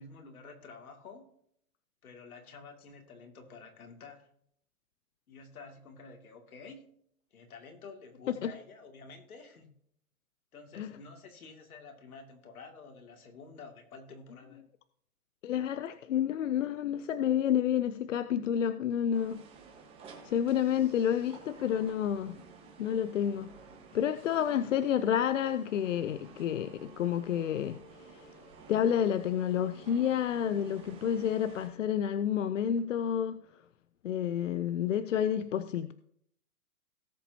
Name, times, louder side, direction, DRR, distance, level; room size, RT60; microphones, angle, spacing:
voice 1, 0.0-1.3 2.0-4.3 5.3-6.9 7.3-9.7 10.5-14.6, left 4 dB, 75° left, 2.5 m, -50 dB
voice 2, 15.4-19.4 20.2-22.4 22.8-23.5 23.9-27.8 28.1-28.3 28.7-33.4 34.0-35.9, left 9 dB, 55° left, 0.6 m, -29 dB
sound 1, 19.1-31.7, right 5 dB, 10° right, 1.3 m, -53 dB
18.0 x 7.2 x 2.8 m
hypercardioid pair, 155°, 44 cm